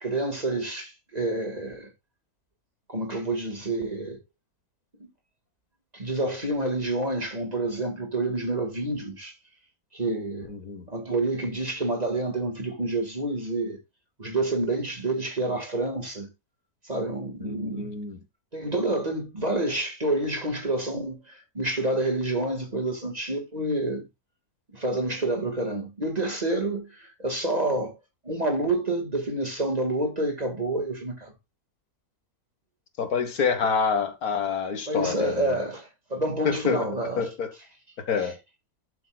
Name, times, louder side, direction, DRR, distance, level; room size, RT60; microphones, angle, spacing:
voice 1, 0.0-1.9 2.9-4.2 5.0-5.1 5.9-9.3 9.9-10.5 10.9-13.8 14.2-16.3 16.8-17.9 18.5-24.1 24.7-27.9 28.2-31.3 34.9-37.3 38.2-38.3, right 2 dB, 25° right, 1.9 m, -28 dB
voice 2, 10.5-10.9 17.4-18.2 33.0-35.6 36.5-36.9 37.2-37.5 38.0-38.4, left 5 dB, 70° left, 1.8 m, -27 dB
11.5 x 7.4 x 2.3 m
omnidirectional pair, 1.6 m